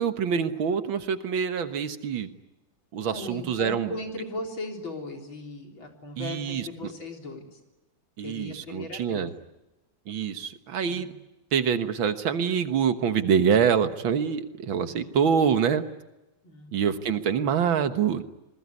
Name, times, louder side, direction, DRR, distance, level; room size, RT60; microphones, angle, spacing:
voice 1, 0.0-2.3 2.9-3.9 6.2-6.9 8.2-9.3 10.1-11.1 11.5-15.8 16.7-18.2, right 7 dB, 80° right, 9 dB, 2.2 m, -25 dB
voice 2, 3.1-7.6 8.2-9.3 10.9-11.1 14.8-15.0 16.4-16.9, left 2 dB, 85° left, 2 dB, 4.8 m, -38 dB
27.5 x 21.0 x 9.6 m, 1.0 s
omnidirectional pair, 2.1 m